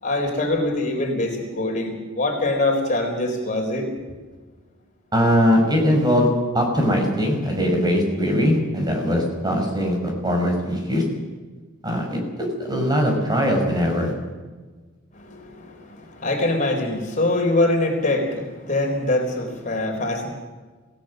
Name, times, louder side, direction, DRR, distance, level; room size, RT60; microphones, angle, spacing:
voice 1, 0.0-3.9 15.1-20.3, left 2 dB, 40° left, 2 dB, 4.0 m, -24 dB
voice 2, 5.1-6.3 6.5-11.0 11.8-14.1, equal, 20° right, 1 dB, 5.2 m, -21 dB
26.0 x 17.5 x 6.5 m, 1.4 s
head